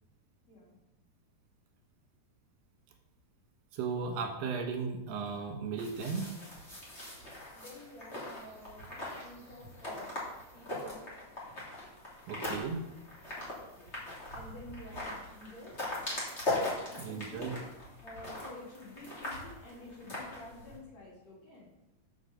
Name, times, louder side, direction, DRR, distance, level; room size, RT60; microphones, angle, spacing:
voice 1, 3.7-6.3 12.3-12.8 17.0-17.5, right 5 dB, 75° right, 2 dB, 3.5 m, -35 dB
sound 1, 5.8-20.8, left 2 dB, 20° left, 2.3 m, -40 dB
voice 2, 7.6-10.2 10.5-11.1 13.7-13.9 14.3-15.8 16.9-17.6 18.0-21.7, left 1 dB, 40° left, -4 dB, 3.6 m, -50 dB
7.3 x 6.8 x 6.7 m, 0.96 s
omnidirectional pair, 4.9 m